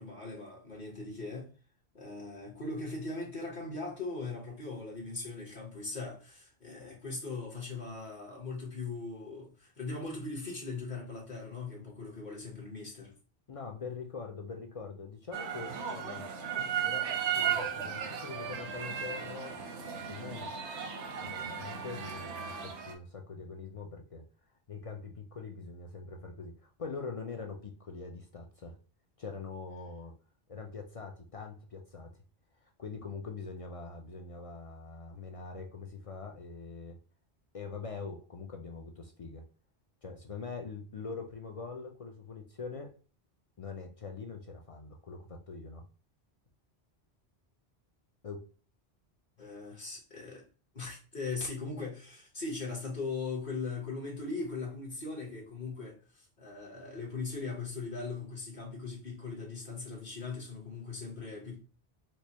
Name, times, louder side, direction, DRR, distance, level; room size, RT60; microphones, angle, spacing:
voice 1, 0.0-1.5 1.9-13.1 49.4-50.4 50.7-61.6, left 3 dB, 45° left, 1.1 m, -39 dB
voice 2, 13.5-16.3 16.8-19.6 20.0-20.5 21.2-24.2 24.7-28.8 29.2-30.1 30.5-32.1 32.6-37.0 37.5-39.4 40.0-43.0 43.6-45.9 48.2-48.5, left 4 dB, 65° left, 0.3 m, -43 dB
sound 1, 15.3-22.9, right 8 dB, 90° right, 1.0 m, -35 dB
4.5 x 2.0 x 2.8 m
omnidirectional pair, 1.1 m